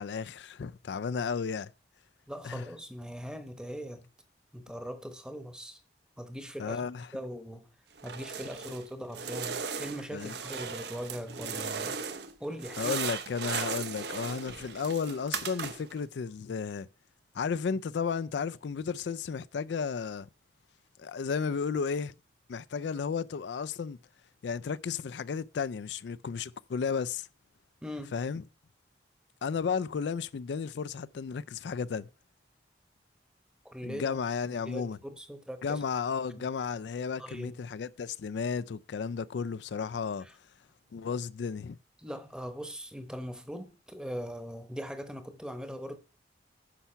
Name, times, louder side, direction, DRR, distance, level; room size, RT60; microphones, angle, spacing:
voice 1, 0.0-1.7 2.4-2.6 6.6-7.1 10.1-10.3 12.8-16.9 17.3-20.3 21.0-22.1 22.5-24.0 24.4-27.3 28.1-28.4 29.4-32.1 33.8-35.0 35.6-40.3 40.9-41.8, left 6 dB, 80° left, 0.4 m, -33 dB
voice 2, 2.3-4.1 4.5-5.8 6.2-6.8 7.1-7.7 8.0-12.1 12.4-13.0 27.8-28.2 33.6-34.2 34.6-35.8 36.3-36.5 37.2-37.6 40.2-40.3 42.0-46.0, equal, 5° right, 0.9 m, -40 dB
sound 1, 8.0-8.8 9.1-12.3 12.6-16.0, right 6 dB, 75° right, 1.0 m, -37 dB
10.0 x 5.7 x 5.6 m
head